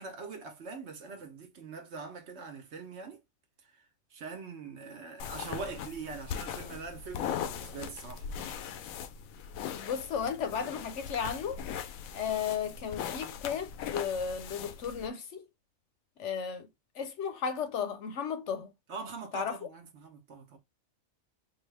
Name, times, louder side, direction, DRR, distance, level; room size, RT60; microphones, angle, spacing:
voice 1, 0.0-3.2 4.1-8.6 18.9-20.6, right 4 dB, 60° right, 1.1 m, -43 dB
sound 1, 5.2-15.1, left 8 dB, 90° left, 1.0 m, -40 dB
voice 2, 9.7-11.6 12.1-15.5 16.2-16.7 16.9-18.7 19.3-19.7, left 7 dB, 65° left, 0.9 m, -34 dB
4.7 x 2.3 x 3.2 m
omnidirectional pair, 1.4 m